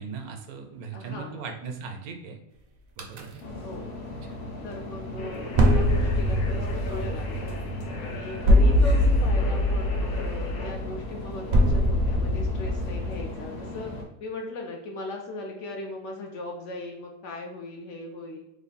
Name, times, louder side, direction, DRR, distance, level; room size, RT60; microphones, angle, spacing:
voice 1, 0.0-2.4 3.0-3.4 4.3-4.4 5.1-5.3, right 5 dB, 75° right, 5 dB, 1.1 m, -38 dB
voice 2, 0.9-1.5 3.5-3.9 4.6-7.5 8.0-13.9 14.2-18.4, left 2 dB, 65° left, 1 dB, 0.8 m, -38 dB
sound 1, 3.0-3.2 5.5-13.2, equal, 55° right, 0.6 m, -23 dB
sound 2, 3.4-14.0, left 2 dB, 90° left, 1.3 m, -37 dB
3.3 x 2.2 x 4.0 m, 0.92 s
omnidirectional pair, 1.6 m